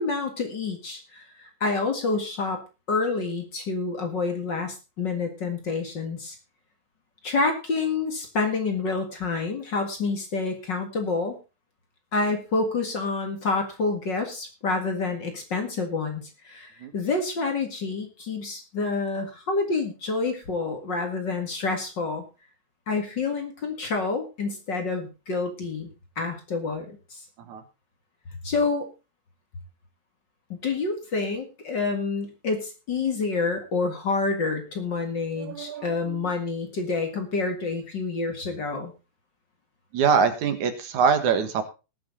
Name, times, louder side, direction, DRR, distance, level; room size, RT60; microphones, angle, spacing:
voice 1, 0.0-2.6 2.9-6.3 7.2-11.4 12.1-22.2 22.9-25.9 26.2-27.2 28.4-28.9 30.6-38.9, left 3 dB, 40° left, 4 dB, 2.2 m, -28 dB
voice 2, 35.4-36.2 39.9-41.6, right 6 dB, 80° right, 9 dB, 3.0 m, -24 dB
19.0 x 7.2 x 3.9 m, 0.30 s
omnidirectional pair, 3.4 m